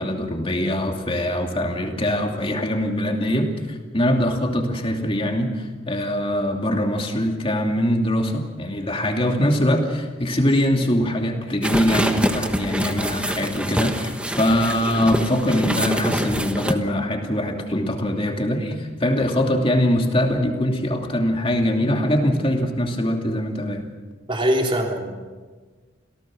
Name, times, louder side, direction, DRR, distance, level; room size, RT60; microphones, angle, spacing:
voice 1, 0.0-23.9, left 1 dB, 30° left, 2 dB, 2.7 m, -22 dB
sound 1, 11.6-16.7, equal, 5° right, 1.2 m, -25 dB
voice 2, 24.3-25.2, equal, 25° right, 1 dB, 3.3 m, -22 dB
28.0 x 17.5 x 6.4 m, 1.4 s
head